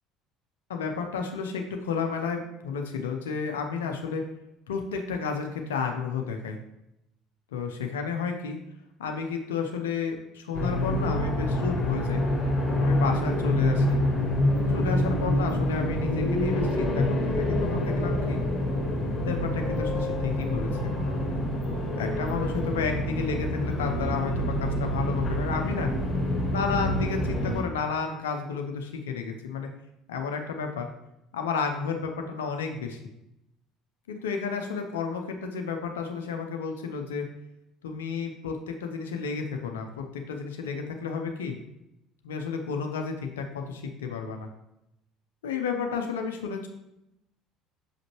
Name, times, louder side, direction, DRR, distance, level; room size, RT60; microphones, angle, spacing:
voice 1, 0.7-4.2 4.7-6.6 7.5-8.6 9.0-12.2 12.8-14.0 14.7-18.4 19.2-20.9 22.0-25.9 26.5-29.7 30.1-30.9 31.3-33.0 34.1-37.3 37.8-41.5 42.2-44.5 45.4-46.7, left 5 dB, 80° left, 4 dB, 0.6 m, -32 dB
sound 1, 10.5-27.6, left 1 dB, 40° left, 1.9 m, -27 dB
6.4 x 5.0 x 3.0 m, 0.86 s
hypercardioid pair, 65°, 0 cm